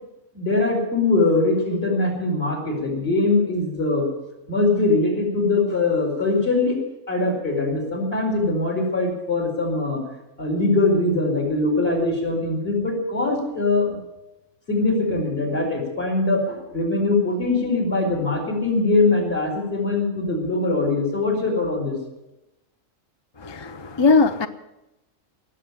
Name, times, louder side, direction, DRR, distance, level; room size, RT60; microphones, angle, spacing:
voice 1, 0.3-4.1 4.5-6.8 7.1-10.0 10.4-14.0 14.7-22.0, left 2 dB, 50° left, 1 dB, 4.7 m, -22 dB
voice 2, 23.4-24.5, left 4 dB, 30° left, 10 dB, 0.5 m, -19 dB
18.5 x 7.7 x 10.0 m, 0.96 s
omnidirectional pair, 1.4 m